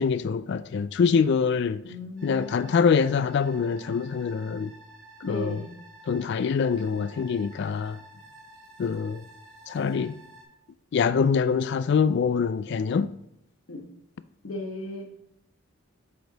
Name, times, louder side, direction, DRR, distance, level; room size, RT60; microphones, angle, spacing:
voice 1, 0.0-1.8 2.2-4.7 5.3-5.6 6.1-8.0 8.8-9.2 9.7-10.1 10.9-13.1, left 6 dB, 55° left, 0.3 m, -24 dB
voice 2, 1.8-2.7 5.2-5.7 13.7-13.8 14.4-15.1, left 1 dB, 70° left, 1.3 m, -36 dB
sound 1, 2.2-10.4, right 1 dB, 60° right, 2.9 m, -51 dB
7.8 x 5.0 x 4.0 m
head